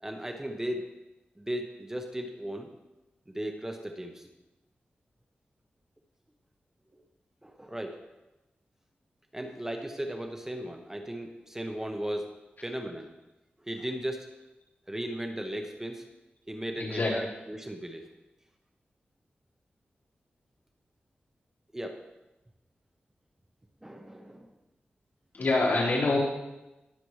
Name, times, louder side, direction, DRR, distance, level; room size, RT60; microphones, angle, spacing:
voice 1, 0.0-0.9 1.4-2.7 3.3-4.3 7.4-8.0 9.3-13.1 13.6-14.3 14.9-16.0 16.5-18.1 21.7-22.0 23.8-24.5, right 1 dB, 15° right, 4 dB, 0.8 m, -36 dB
voice 2, 16.8-17.1 25.3-26.2, left 2 dB, 60° left, -6 dB, 3.9 m, -25 dB
20.0 x 6.8 x 3.2 m, 1.0 s
wide cardioid pair, 110°, 4 cm